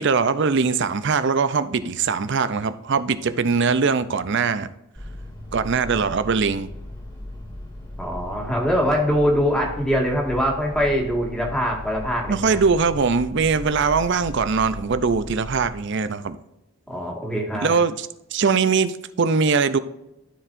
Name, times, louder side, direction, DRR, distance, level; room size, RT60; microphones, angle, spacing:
voice 1, 0.0-4.7 5.5-6.7 12.3-16.4 17.6-19.8, right 5 dB, 55° right, 13 dB, 0.5 m, -21 dB
sound 1, 4.9-15.7, left 1 dB, 20° left, 2.1 m, -37 dB
voice 2, 8.0-12.6 16.9-17.7, equal, 5° left, -2 dB, 1.8 m, -23 dB
13.0 x 4.7 x 2.6 m, 0.87 s
head